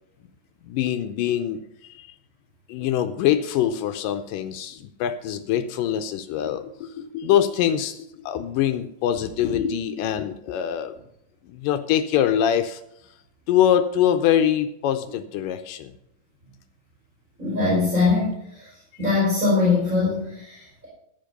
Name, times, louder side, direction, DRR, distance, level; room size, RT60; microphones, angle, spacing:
voice 1, 0.6-2.1 2.7-10.9 11.5-12.8 13.5-15.9, left 10 dB, 80° left, 9 dB, 2.1 m, -24 dB
voice 2, 17.4-18.3 18.6-18.7 19.0-20.9, left 3 dB, 20° right, -6 dB, 4.7 m, -22 dB
14.0 x 5.2 x 6.6 m, 0.76 s
omnidirectional pair, 4.1 m